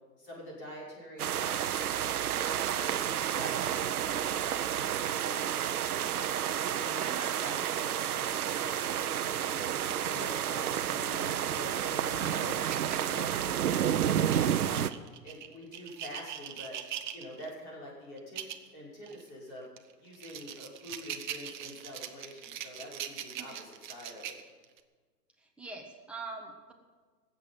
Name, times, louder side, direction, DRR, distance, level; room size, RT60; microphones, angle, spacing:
voice 1, 0.2-1.7 2.3-9.6 10.0-12.6 13.1-13.9 14.1-14.9 15.2-16.8 17.1-18.4 18.7-19.7 20.0-24.4, left 1 dB, 25° left, -5 dB, 5.7 m, -46 dB
sound 1, 1.2-14.9, right 10 dB, 65° right, 0.8 m, -30 dB
voice 2, 7.0-7.3 23.4-23.6 25.4-26.7, right 4 dB, ahead, 0 dB, 1.2 m, -44 dB
sound 2, 12.4-13.7 14.3-17.5 18.2-18.7 19.1-19.2 19.8-24.8, right 10 dB, 30° right, 0.8 m, -42 dB
19.0 x 8.2 x 7.5 m, 1.4 s
hypercardioid pair, 140°, 49 cm